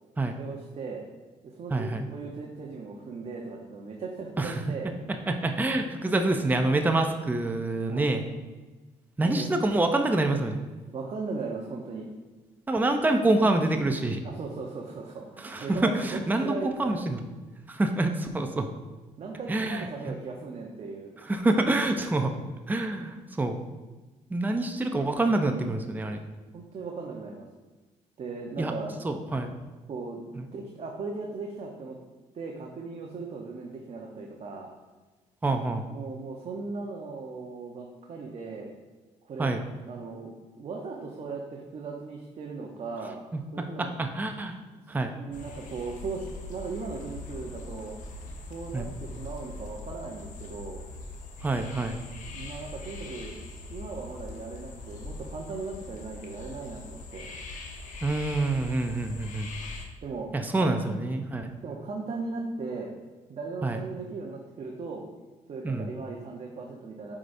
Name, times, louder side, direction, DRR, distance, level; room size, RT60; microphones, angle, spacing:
voice 1, 0.4-1.0 1.4-4.9 7.9-8.1 9.2-9.5 10.9-12.1 14.2-17.1 19.2-21.1 26.5-27.5 28.2-28.9 29.9-32.0 32.3-34.7 35.8-38.7 39.2-39.5 39.9-43.3 43.5-43.9 45.1-48.0 48.5-50.8 52.3-53.3 53.7-57.3 60.0-60.3 60.6-60.7 61.6-63.0 63.3-65.1 65.5-67.2, right 4 dB, 50° right, 0 dB, 0.8 m, -38 dB
voice 2, 1.7-2.1 4.4-4.6 5.1-8.2 9.2-10.6 12.7-14.2 15.4-17.2 17.7-18.7 19.5-19.9 21.3-22.3 22.7-23.6 24.3-26.2 28.6-28.7 29.0-29.5 30.4-30.5 35.4-35.9 39.4-39.6 43.3-44.6 44.9-45.1 48.7-48.9 51.4-52.0 58.0-59.5 60.3-61.5 63.6-63.8 65.6-65.9, right 2 dB, 15° right, 5 dB, 0.5 m, -26 dB
sound 1, 45.3-59.9, left 3 dB, 70° left, 0.9 m, -42 dB
8.4 x 4.9 x 2.6 m, 1.2 s
cardioid pair, 95°, 14 cm